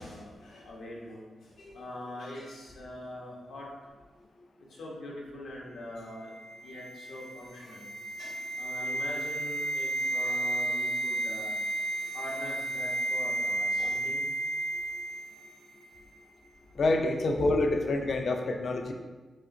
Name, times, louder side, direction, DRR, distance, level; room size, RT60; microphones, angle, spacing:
voice 1, 0.0-3.7 4.8-6.3 6.6-7.9 8.2-11.5 12.1-14.3 17.4-17.6 18.9-19.0, left 1 dB, 80° left, -4 dB, 1.1 m, -43 dB
sound 1, 6.3-15.6 15.8-16.0, right 1 dB, 60° right, 0.4 m, -33 dB
voice 2, 16.7-18.9, left 2 dB, 50° left, 3 dB, 0.4 m, -27 dB
6.1 x 2.5 x 2.6 m, 1.3 s
wide cardioid pair, 145°, 0 cm